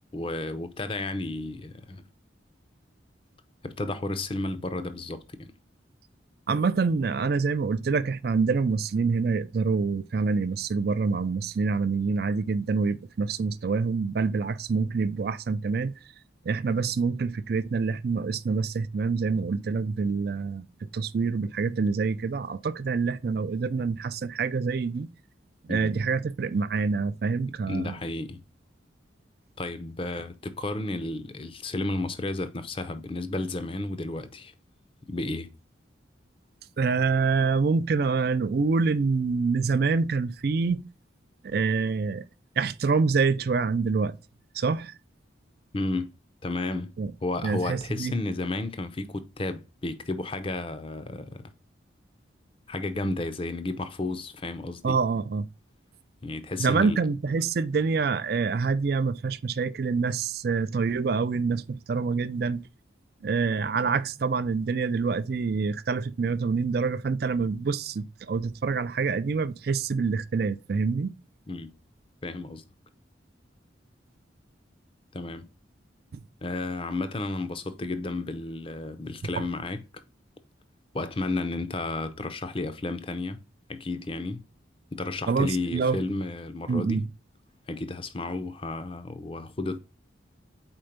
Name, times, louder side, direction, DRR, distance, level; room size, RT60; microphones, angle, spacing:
voice 1, 0.1-2.0 3.6-5.5 25.7-25.9 27.7-28.4 29.6-34.5 35.1-35.5 45.7-46.1 46.4-46.9 47.2-51.4 52.7-55.0 56.2-57.0 71.5-71.7 72.2-72.6 75.1-75.5 76.4-79.8 80.9-83.4 83.7-84.4 84.9-87.0 87.7-89.8, left 2 dB, 30° left, 0.5 m, -32 dB
voice 2, 6.5-15.9 16.4-25.1 25.7-28.0 36.8-40.8 41.4-42.2 42.6-44.2 44.5-44.9 47.0-47.1 47.4-48.1 54.8-55.5 56.6-62.6 63.2-71.1 76.1-76.2 79.4-79.5 85.3-86.0 86.7-87.1, right 4 dB, 55° right, 0.4 m, -26 dB
4.4 x 4.4 x 5.1 m
head